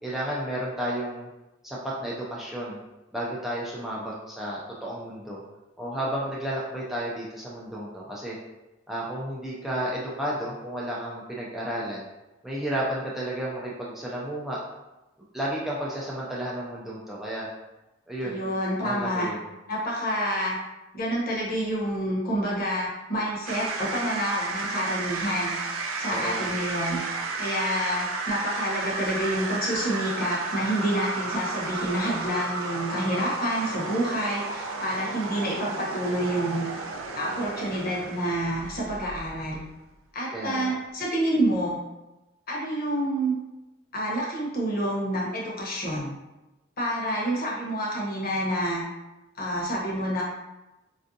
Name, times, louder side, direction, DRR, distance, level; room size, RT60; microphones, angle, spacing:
voice 1, 0.0-1.3 1.6-2.8 3.1-5.4 5.8-8.4 8.9-12.0 12.4-14.6 15.3-17.5 18.1-18.5 18.8-19.4 26.1-26.5 40.3-40.7, right 1 dB, ahead, -6 dB, 0.4 m, -32 dB
voice 2, 18.2-19.3 19.7-20.6 20.9-25.6 26.0-27.0 27.4-36.6 37.1-39.6 40.1-41.8 42.5-43.4 43.9-46.1 46.8-48.8 49.4-50.2, right 1 dB, 50° left, -4 dB, 0.9 m, -28 dB
sound 1, 23.5-39.8, right 3 dB, 85° right, 0.4 m, -33 dB
3.4 x 2.5 x 2.6 m, 1.0 s
head